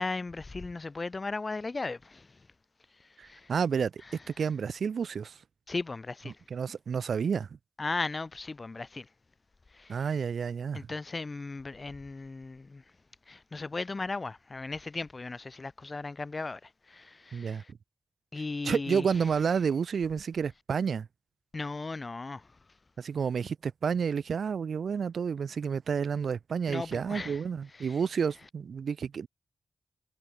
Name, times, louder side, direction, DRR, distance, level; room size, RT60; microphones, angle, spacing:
voice 1, 0.0-2.3 3.2-3.5 5.7-6.4 7.8-9.1 9.7-10.0 10.7-12.8 13.3-16.6 16.9-17.7 18.3-19.1 21.5-22.5 26.7-27.4 27.8-28.0, left 3 dB, 35° left, 3.1 m, -36 dB
voice 2, 3.2-4.0 4.4-5.4 6.5-7.5 9.9-10.9 17.3-17.6 18.6-21.1 23.0-29.3, right 6 dB, 75° right, 5.2 m, -30 dB
wide cardioid pair, 115°, 0 cm